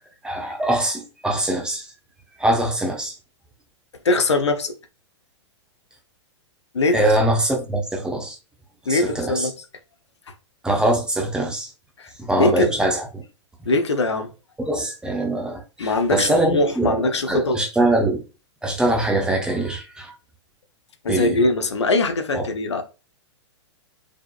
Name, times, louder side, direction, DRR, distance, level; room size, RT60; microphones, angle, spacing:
voice 1, 0.2-1.9 2.4-3.1 6.9-8.4 8.9-9.5 10.6-11.7 12.2-13.2 14.6-17.0 17.3-18.2 18.6-20.1 21.1-21.4 22.3-22.4, right 1 dB, 5° right, 1.0 m, -22 dB
voice 2, 4.0-4.7 6.7-7.1 8.9-9.5 12.0-12.1 12.4-12.7 13.7-14.3 15.8-17.6 21.0-22.8, left 2 dB, 70° left, 0.9 m, -21 dB
5.2 x 3.8 x 2.4 m
figure-of-eight pair, 105°, 15 cm